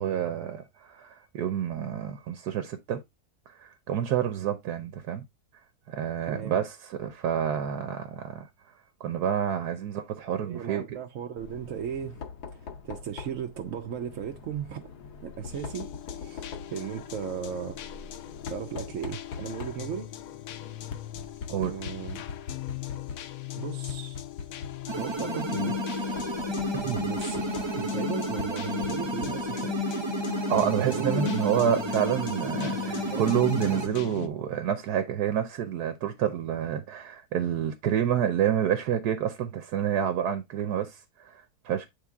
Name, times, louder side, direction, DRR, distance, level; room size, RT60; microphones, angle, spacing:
voice 1, 0.0-3.0 3.6-5.2 5.9-8.5 9.0-10.8 21.5-21.7 26.7-27.0 30.5-41.9, right 9 dB, 85° right, 1.3 m, -28 dB
voice 2, 6.3-6.6 10.4-12.2 12.5-14.9 15.2-17.8 18.5-20.1 21.6-22.3 23.5-24.2 25.0-25.8 27.0-27.5 27.7-29.8 30.9-31.4 33.1-33.3, right 8 dB, 60° right, 0.9 m, -36 dB
Knock, 11.4-29.8, left 5 dB, 85° left, 1.6 m, -43 dB
sound 1, 15.5-34.3, left 15 dB, 70° left, 1.0 m, -36 dB
sound 2, 24.9-33.9, right 4 dB, 35° right, 0.4 m, -33 dB
8.3 x 3.6 x 3.5 m
omnidirectional pair, 1.6 m